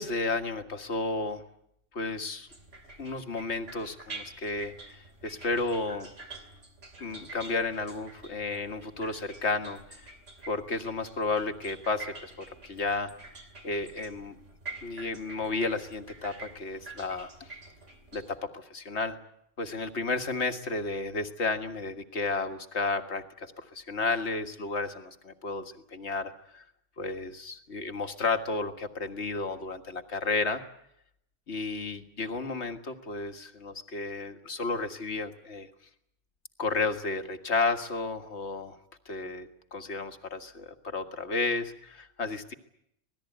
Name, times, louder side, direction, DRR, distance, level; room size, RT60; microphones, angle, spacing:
voice 1, 0.0-1.4 1.9-2.5 3.0-6.1 7.0-10.1 10.5-13.1 13.6-14.4 14.8-17.6 18.1-19.2 19.6-26.6 27.0-30.6 31.5-35.7 36.6-38.8 39.1-42.5, left 3 dB, 65° left, 6 dB, 2.0 m, -32 dB
sound 1, 2.5-18.4, right 3 dB, 75° right, 3.1 m, -47 dB
26.0 x 19.0 x 9.2 m, 0.76 s
omnidirectional pair, 1.3 m